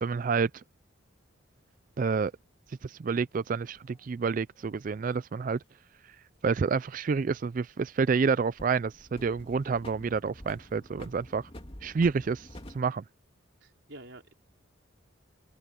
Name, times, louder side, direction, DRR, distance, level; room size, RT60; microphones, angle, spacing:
voice 1, 0.0-0.5 2.0-2.3 2.8-5.6 6.4-11.4 11.8-12.5 12.7-13.0, right 5 dB, 40° right, 0.3 m, -28 dB
sound 1, 3.7-5.0 7.3-8.2 8.6-12.8, left 1 dB, 30° left, 2.3 m, -48 dB
voice 2, 13.6-14.3, right 1 dB, 65° right, 4.0 m, -48 dB
head